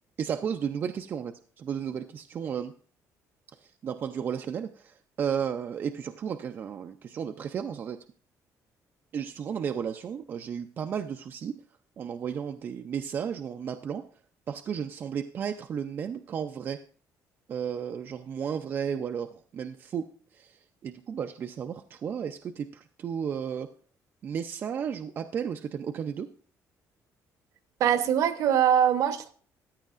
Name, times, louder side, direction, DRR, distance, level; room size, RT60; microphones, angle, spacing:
voice 1, 0.2-2.7 3.6-8.0 9.1-11.5 12.0-14.0 14.5-16.8 17.5-20.1 20.3-23.7 24.2-26.3, right 7 dB, 35° right, 6 dB, 0.4 m, -33 dB
voice 2, 27.8-29.3, right 9 dB, 60° right, 11 dB, 0.9 m, -23 dB
14.5 x 9.6 x 2.4 m, 0.43 s
cardioid pair, 175°, 6 cm